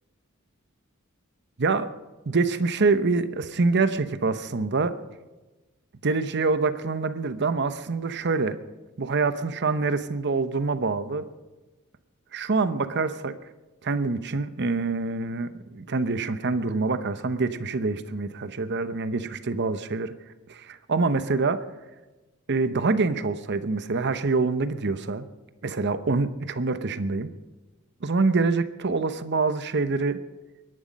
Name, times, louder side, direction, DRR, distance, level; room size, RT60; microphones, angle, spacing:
voice 1, 1.6-1.9 2.3-5.0 6.0-8.6 9.0-11.3 12.3-13.4 13.8-20.1 20.5-21.7 22.5-25.2 25.6-27.3 28.0-30.2, right 3 dB, 55° right, 12 dB, 0.8 m, -25 dB
21.5 x 11.5 x 5.3 m, 1.2 s
head